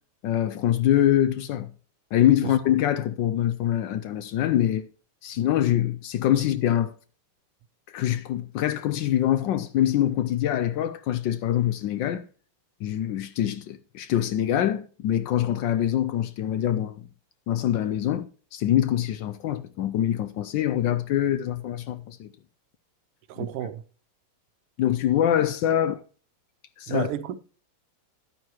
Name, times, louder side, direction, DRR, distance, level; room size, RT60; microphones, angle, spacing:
voice 1, 0.2-1.7 2.1-4.9 5.2-6.9 7.9-12.2 12.8-17.0 17.5-18.3 18.5-22.3 24.8-26.0 26.8-27.1, left 11 dB, 75° left, 1.1 m, -24 dB
voice 2, 23.3-23.8 26.9-27.4, right 11 dB, 90° right, 1.6 m, -31 dB
11.0 x 9.2 x 2.9 m
omnidirectional pair, 2.4 m